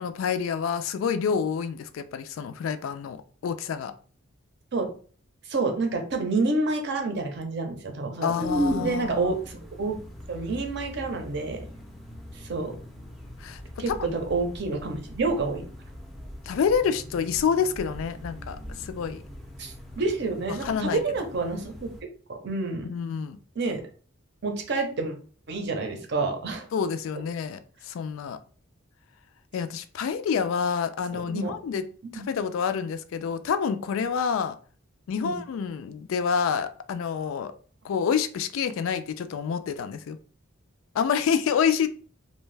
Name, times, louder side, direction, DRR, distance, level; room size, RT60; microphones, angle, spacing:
voice 1, 0.0-3.9 8.2-9.3 13.4-14.0 16.5-19.2 20.5-21.0 22.8-23.4 26.7-28.4 29.5-31.9 32.1-34.6 35.1-37.5 37.8-40.2 40.9-41.9, left 6 dB, 75° left, 0.3 m, -28 dB
voice 2, 5.5-8.3 8.8-10.0 10.3-11.6 12.5-12.7 13.8-15.7 19.6-21.9 22.3-22.9 23.6-23.8 24.4-25.1 25.5-26.7 31.3-31.5 32.1-32.2 35.2-35.4, right 3 dB, 55° right, 0.6 m, -28 dB
sound 1, 8.4-22.0, equal, ahead, 0.4 m, -38 dB
2.6 x 2.2 x 3.2 m
head